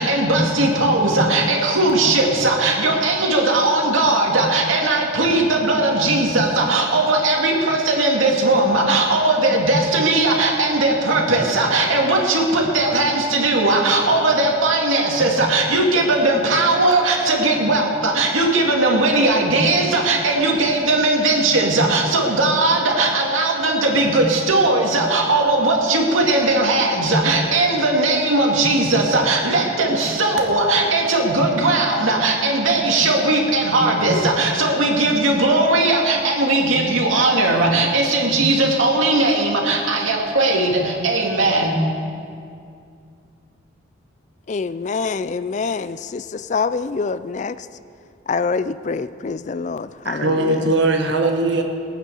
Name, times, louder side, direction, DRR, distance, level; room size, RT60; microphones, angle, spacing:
voice 1, 0.0-41.8, right 2 dB, 85° right, 2.3 m, -18 dB
voice 2, 44.5-47.7 48.3-50.7, left 4 dB, 35° left, 0.3 m, -25 dB
voice 3, 50.0-51.6, right 2 dB, 60° right, 1.2 m, -19 dB
19.5 x 9.1 x 6.8 m
head